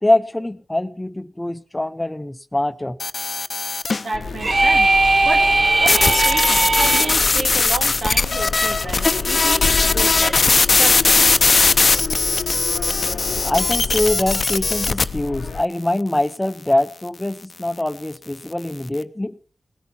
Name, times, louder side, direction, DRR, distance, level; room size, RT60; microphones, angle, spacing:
voice 1, 0.0-3.0 13.4-19.4, left 1 dB, 15° left, 12 dB, 0.7 m, -23 dB
sound 1, 3.0-4.1 5.9-15.0, left 4 dB, 55° left, 0.7 m, -18 dB
voice 2, 4.0-5.0 5.2-5.5 5.8-9.6 9.9-10.4 10.8-11.4, right 3 dB, 85° right, 4 dB, 2.6 m, -30 dB
sound 2, 4.1-15.6, left 5 dB, 90° left, 0.8 m, -30 dB
sound 3, 4.4-7.2, right 2 dB, 55° right, 1.3 m, -18 dB
18.5 x 10.5 x 5.9 m, 0.43 s
wide cardioid pair, 70°, 0 cm